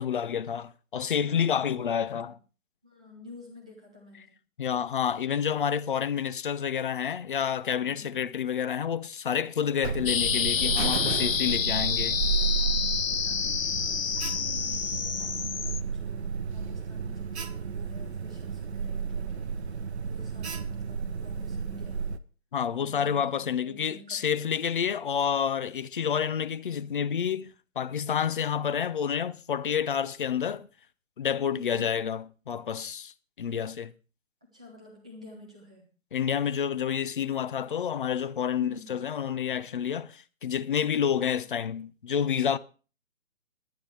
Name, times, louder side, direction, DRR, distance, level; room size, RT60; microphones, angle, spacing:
voice 1, 0.0-2.4 4.6-12.2 22.5-30.7 31.2-33.9 36.1-42.6, left 8 dB, 40° left, 0.7 m, -29 dB
voice 2, 1.2-2.3 2.8-4.4 7.8-8.2 12.7-22.1 22.7-24.6 31.5-32.0 34.5-35.9 38.6-39.0, left 1 dB, 5° right, 0.5 m, -50 dB
Alarm, 9.8-22.2, right 6 dB, 55° right, 1.0 m, -32 dB
sound 1, 10.1-15.8, left 7 dB, 75° left, 0.7 m, -28 dB
22.5 x 9.5 x 3.2 m
figure-of-eight pair, 145°, 40 cm